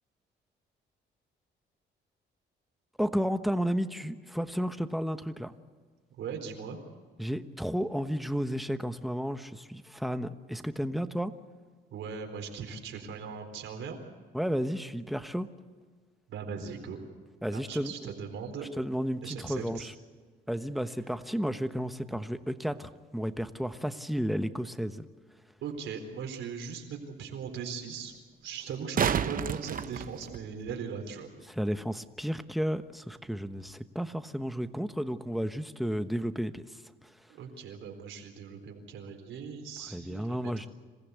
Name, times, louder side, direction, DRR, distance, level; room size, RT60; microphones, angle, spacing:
voice 1, 3.0-5.5 7.2-11.3 14.3-15.5 17.4-17.9 18.8-19.8 20.5-25.1 31.5-37.1 39.9-40.7, equal, ahead, 10 dB, 1.1 m, -32 dB
voice 2, 6.1-6.8 11.9-14.0 16.3-17.0 17.5-18.7 19.2-19.9 25.6-28.1 28.4-31.3 37.3-40.7, right 6 dB, 80° right, 4 dB, 4.1 m, -39 dB
sound 1, 25.7-25.8 28.6-30.7 33.6-33.7, right 7 dB, 45° right, 0.9 m, -31 dB
27.0 x 15.5 x 8.3 m, 1.5 s
cardioid pair, 90°, 20 cm